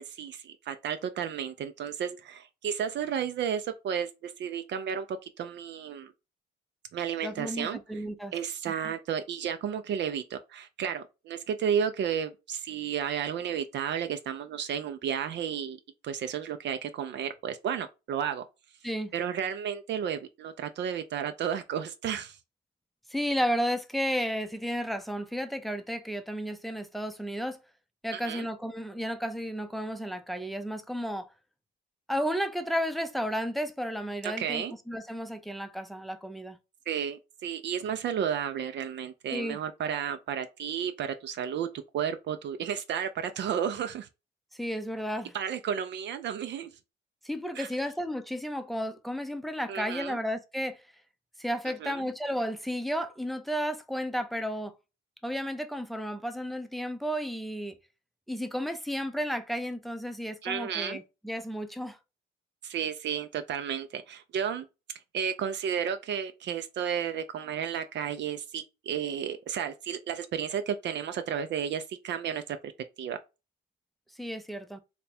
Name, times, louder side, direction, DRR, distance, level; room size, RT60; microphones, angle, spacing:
voice 1, 0.0-6.1 6.9-7.8 8.3-15.8 16.0-18.4 19.1-22.4 28.2-28.5 34.2-34.7 36.9-41.7 41.9-44.1 45.3-46.7 47.6-47.7 49.7-50.2 51.7-52.0 60.4-61.0 62.6-72.7 73.0-73.2, right 8 dB, 65° right, 0.4 m, -32 dB
voice 2, 7.2-8.3 8.8-8.9 18.8-19.1 23.1-27.6 28.0-31.3 32.1-36.6 39.3-39.6 44.5-45.3 47.2-50.8 51.4-54.7 55.2-57.7 58.3-62.0 74.2-74.8, equal, ahead, 0.5 m, -33 dB
3.3 x 2.2 x 4.2 m
cardioid pair, 90°, 20 cm